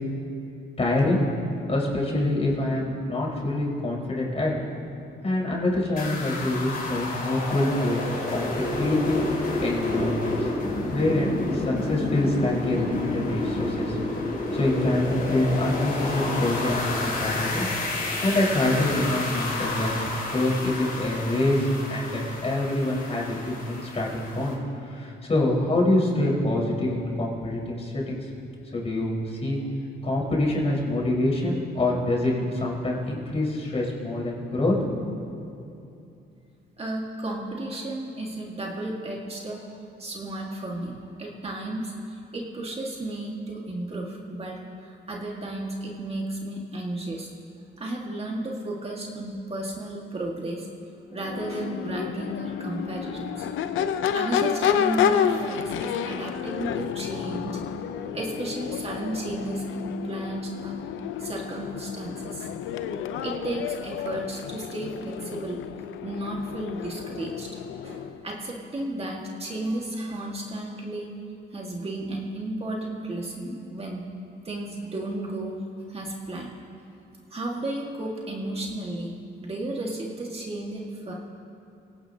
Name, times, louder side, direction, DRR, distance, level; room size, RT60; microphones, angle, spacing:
voice 1, 0.8-1.2 1.7-4.5 5.2-9.3 9.6-10.5 10.9-14.0 14.5-17.7 18.2-19.9 20.3-24.6 24.8-28.3 28.7-29.6 30.0-34.7, left 1 dB, 30° left, -4 dB, 4.9 m, -25 dB
sound 1, 6.0-24.5, left 2 dB, 45° left, 4.7 m, -30 dB
voice 2, 36.8-39.7 40.0-47.3 47.8-50.7 51.1-53.5 54.1-57.6 58.1-60.8 61.2-62.5 63.2-65.6 66.0-67.5 67.8-71.1 71.5-74.0 74.4-75.6 75.9-76.6 77.3-81.1, right 1 dB, 30° right, -2 dB, 1.9 m, -33 dB
Crowd / Race car auto racing / Accelerating revving vroom, 51.1-68.2, left 8 dB, 80° left, 0.7 m, -30 dB
25.0 x 17.5 x 2.9 m, 2.7 s
cardioid pair, 90°, 20 cm